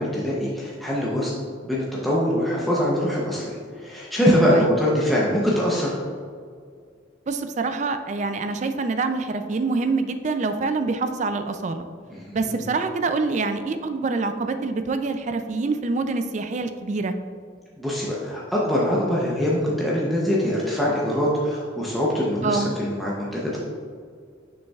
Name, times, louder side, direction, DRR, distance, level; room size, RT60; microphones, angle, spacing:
voice 1, 0.0-1.3 1.6-5.9 12.1-12.6 17.8-23.6, equal, ahead, -6 dB, 0.7 m, -23 dB
voice 2, 7.3-11.9 12.3-17.1 22.4-22.7, right 3 dB, 35° right, 8 dB, 0.3 m, -25 dB
6.7 x 6.2 x 2.3 m, 2.1 s
head